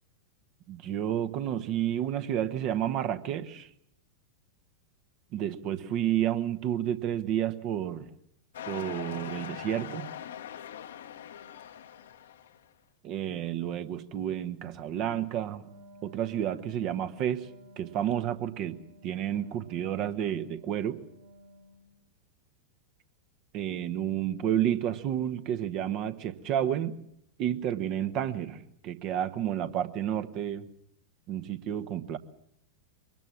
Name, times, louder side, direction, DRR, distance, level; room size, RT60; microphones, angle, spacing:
voice 1, 0.7-3.7 5.3-8.1 8.7-10.1 13.0-15.6 16.0-17.5 17.8-18.8 19.0-21.0 23.5-26.9 27.4-30.7 31.3-32.2, right 10 dB, 40° right, 11 dB, 1.2 m, -30 dB
sound 1, 8.5-12.6, left 10 dB, 60° left, 1.1 m, -42 dB
Wind instrument woodwind instrument, 15.5-22.0, equal, 65° right, 5.3 m, -55 dB
23.5 x 20.0 x 7.4 m, 0.73 s
figure-of-eight pair, 90°, 0 cm